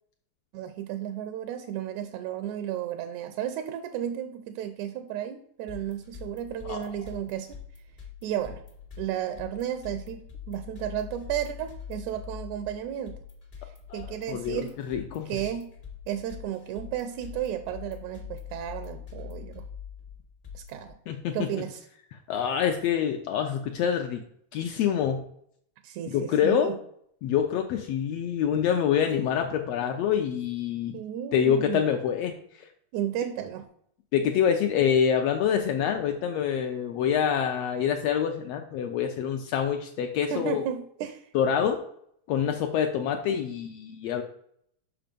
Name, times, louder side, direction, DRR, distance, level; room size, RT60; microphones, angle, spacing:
voice 1, 0.5-7.6 8.2-8.6 9.0-13.2 13.9-14.7 15.3-15.7 16.1-19.7 20.5-21.0 21.3-21.8 25.8-26.8 30.9-31.9 32.9-33.7 40.3-41.3, right 10 dB, 85° right, 9 dB, 1.9 m, -33 dB
sound 1, 5.7-20.9, left 8 dB, 35° left, 0.8 m, -44 dB
voice 2, 13.9-15.3 21.1-21.5 22.3-24.2 24.5-25.2 26.1-26.7 27.2-31.0 31.3-32.3 34.1-40.6 41.3-41.8 42.3-44.2, left 8 dB, 75° left, 4 dB, 1.5 m, -26 dB
5.7 x 5.0 x 5.1 m, 0.67 s
omnidirectional pair, 3.3 m